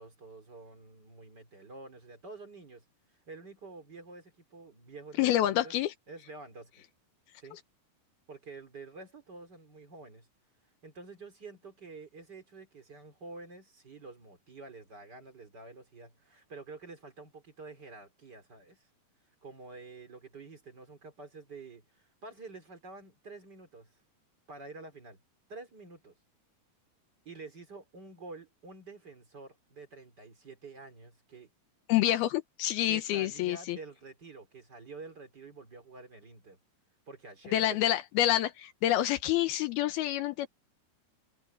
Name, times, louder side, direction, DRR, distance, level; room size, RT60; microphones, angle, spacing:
voice 1, 0.0-2.8 3.3-5.7 6.1-6.8 7.4-7.6 8.3-10.3 10.8-18.8 19.4-23.9 24.5-25.2 25.5-26.1 27.2-31.5 32.9-36.6 37.1-37.8, right 3 dB, 30° right, 3.2 m, -48 dB
voice 2, 5.2-5.9 31.9-33.8 37.5-40.5, left 13 dB, 80° left, 2.8 m, -27 dB
omnidirectional pair, 4.5 m